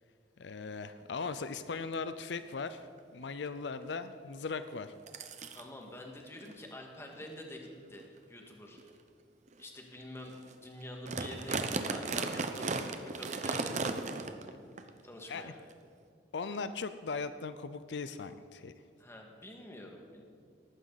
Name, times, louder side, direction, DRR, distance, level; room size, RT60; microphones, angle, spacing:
voice 1, 0.4-2.9 3.1-4.9 15.3-15.5 16.3-18.7, left 4 dB, 75° left, 11 dB, 0.6 m, -38 dB
sound 1, 1.2-1.3 1.7-2.0 2.5-2.6 3.0-3.3 4.4-4.5 5.1-5.6 6.4-6.5 7.1-7.3 7.9-8.0 8.7-8.9 9.5-9.6 10.0-10.1 10.3-10.5 10.8-14.5 14.8-14.9 15.7-15.8, right 3 dB, 40° right, 0.9 m, -36 dB
voice 2, 5.5-8.8 9.6-13.8 15.0-15.6 19.0-20.2, left 1 dB, 15° left, 1 dB, 1.9 m, -47 dB
19.0 x 14.5 x 4.1 m, 2.3 s
head